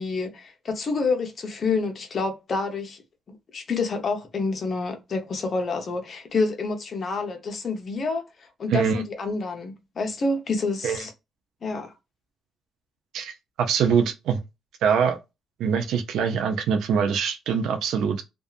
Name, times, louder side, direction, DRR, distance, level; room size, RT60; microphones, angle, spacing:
voice 1, 0.0-3.0 3.3-8.2 8.6-11.1 11.6-11.9, left 3 dB, 45° left, 0.8 m, -28 dB
voice 2, 8.7-9.0 10.8-11.0 13.1-13.3 13.6-14.4 14.8-15.2 15.6-18.2, right 7 dB, 80° right, 0.5 m, -23 dB
2.6 x 2.3 x 2.4 m
cardioid pair, 90°, 0 cm